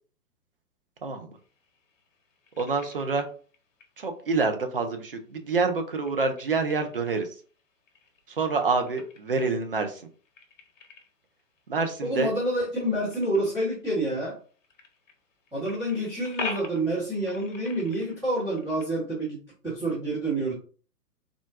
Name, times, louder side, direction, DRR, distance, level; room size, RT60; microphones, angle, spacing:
sound 1, 1.4-18.9, left 4 dB, 50° left, 0.9 m, -45 dB
voice 1, 2.6-3.3 4.0-7.3 8.4-10.0 11.7-12.3, right 4 dB, 40° right, 5 dB, 0.4 m, -27 dB
voice 2, 12.0-14.4 15.5-20.5, right 1 dB, 5° right, -11 dB, 0.7 m, -28 dB
3.6 x 2.4 x 2.4 m, 0.40 s
figure-of-eight pair, 120°, 48 cm